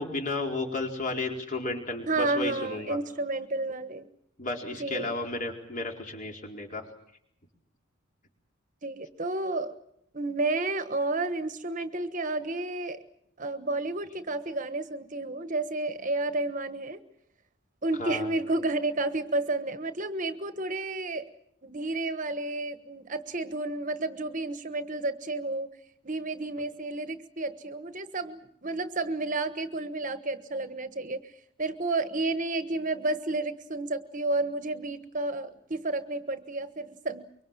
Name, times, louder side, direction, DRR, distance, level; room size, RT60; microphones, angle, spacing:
voice 1, 0.0-3.0 4.4-6.9 18.0-18.3, left 2 dB, 40° left, 2 dB, 4.4 m, -33 dB
voice 2, 2.1-4.1 4.8-5.1 8.8-9.7 10.1-13.0 13.4-17.0 17.8-21.3 21.6-25.7 26.0-31.2 31.6-37.3, right 2 dB, 40° right, 10 dB, 1.3 m, -31 dB
24.5 x 24.0 x 7.5 m, 0.73 s
head